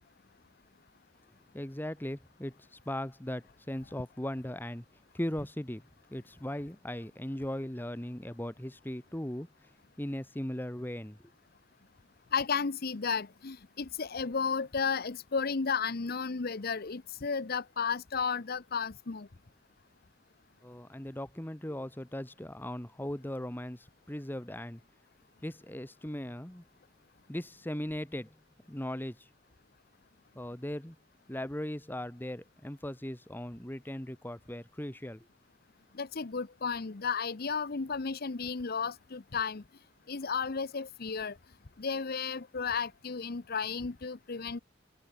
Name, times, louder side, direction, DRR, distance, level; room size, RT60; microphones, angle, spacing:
voice 1, 1.5-4.8 5.1-5.8 6.1-9.7 10.0-11.2 20.6-24.8 25.4-26.6 27.3-28.3 28.7-29.3 30.3-31.0 31.3-35.3, left 1 dB, 10° left, 1.3 m, -38 dB
voice 2, 12.3-19.3 35.9-39.6 40.1-41.4 41.8-44.6, left 5 dB, 50° left, 0.8 m, -33 dB
head